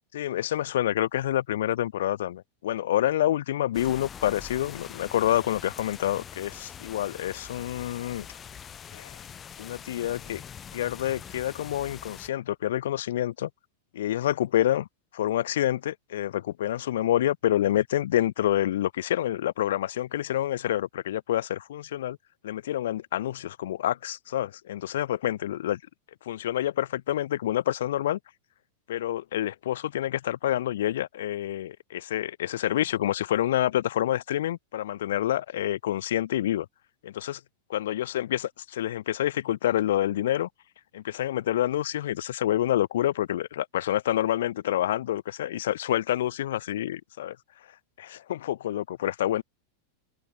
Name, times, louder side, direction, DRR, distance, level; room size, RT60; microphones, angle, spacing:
voice 1, 0.1-8.3 8.9-9.2 9.6-10.4 10.7-13.5 13.9-14.9 15.1-22.2 22.4-25.8 26.3-28.2 28.9-36.7 37.0-37.4 37.7-40.5 40.9-47.4 48.0-49.4, left 12 dB, 60° left, 0.5 m, -27 dB
sound 1, 3.7-12.3, left 8 dB, 25° left, 2.3 m, -44 dB
open air
figure-of-eight pair, 90°, 0 cm